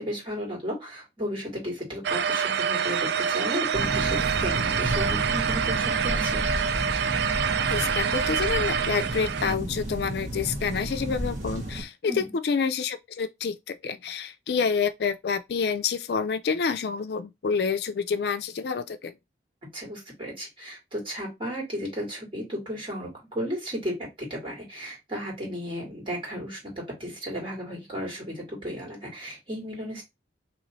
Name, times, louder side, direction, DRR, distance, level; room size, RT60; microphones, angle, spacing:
voice 1, 0.0-6.5 12.1-12.3 19.7-30.0, equal, 30° right, 2.2 m, -34 dB
sound 1, 2.0-9.5, right 7 dB, 65° right, 0.3 m, -26 dB
sound 2, 3.7-11.8, right 1 dB, 45° right, 1.2 m, -32 dB
voice 2, 7.7-19.1, left 5 dB, 60° left, 0.4 m, -28 dB
3.1 x 3.0 x 4.0 m
head